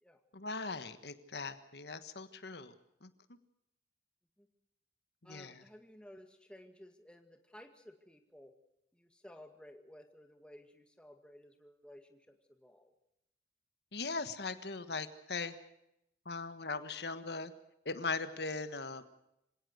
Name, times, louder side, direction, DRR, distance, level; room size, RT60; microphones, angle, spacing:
voice 1, 0.3-2.7 3.0-3.1 5.2-5.6 13.9-15.5 16.2-17.5 17.8-19.0, left 4 dB, 75° left, 11 dB, 1.5 m, -39 dB
voice 2, 5.2-8.5 8.9-12.9, left 1 dB, 5° left, 6 dB, 2.1 m, -56 dB
26.5 x 17.5 x 6.5 m, 0.82 s
head